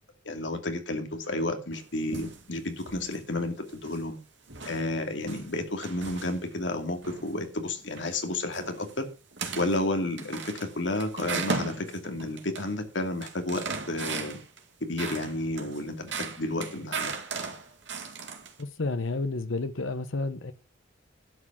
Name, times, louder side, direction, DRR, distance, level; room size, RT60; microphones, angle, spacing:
voice 1, 0.2-4.2 4.6-9.1 9.5-14.4 14.9-17.1, left 1 dB, 70° left, 2.5 m, -31 dB
sound 1, 1.7-2.5 2.8-3.2 3.7-4.1 4.5-6.7 7.0-7.4 7.8-8.2 8.5-8.9 9.3-9.8 10.2-12.7 13.0-14.6 15.0-18.6, right 4 dB, 65° right, 2.4 m, -37 dB
voice 2, 18.6-20.5, left 3 dB, 85° left, 1.0 m, -31 dB
12.0 x 8.7 x 6.0 m
head